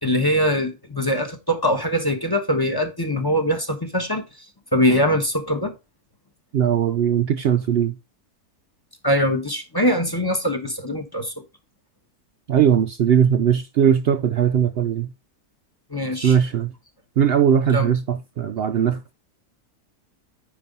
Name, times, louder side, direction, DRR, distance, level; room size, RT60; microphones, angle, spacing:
voice 1, 0.0-4.2 4.7-5.7 9.0-11.3 15.9-16.4 17.7-17.9, equal, 15° left, 1.0 m, -22 dB
voice 2, 6.5-8.0 12.5-15.1 16.1-16.7 17.2-19.1, right 8 dB, 90° right, 0.5 m, -19 dB
9.5 x 3.5 x 5.3 m
omnidirectional pair, 1.6 m